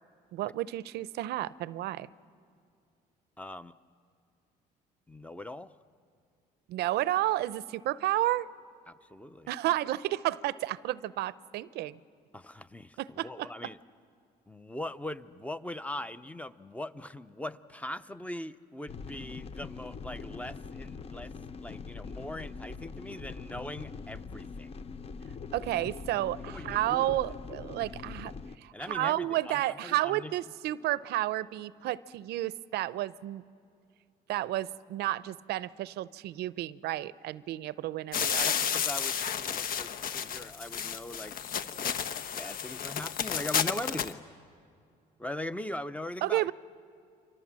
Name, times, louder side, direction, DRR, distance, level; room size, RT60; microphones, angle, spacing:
voice 1, 0.3-2.1 6.7-8.5 9.5-12.0 13.0-13.5 25.5-33.4 34.3-38.5 46.2-46.5, right 15 dB, 75° right, 17 dB, 0.6 m, -31 dB
voice 2, 3.4-3.7 5.1-5.7 8.9-9.5 12.3-13.8 14.5-21.3 21.6-24.7 26.5-27.1 28.7-30.3 38.4-41.4 41.6-41.9 42.3-44.3 45.2-46.5, left 1 dB, 10° left, 13 dB, 0.7 m, -41 dB
sound 1, 18.9-28.6, left 5 dB, 35° left, 0.8 m, -43 dB
sound 2, 38.1-44.1, left 8 dB, 60° left, 1.2 m, -32 dB
30.0 x 25.5 x 7.5 m, 2.4 s
cardioid pair, 110°, 17 cm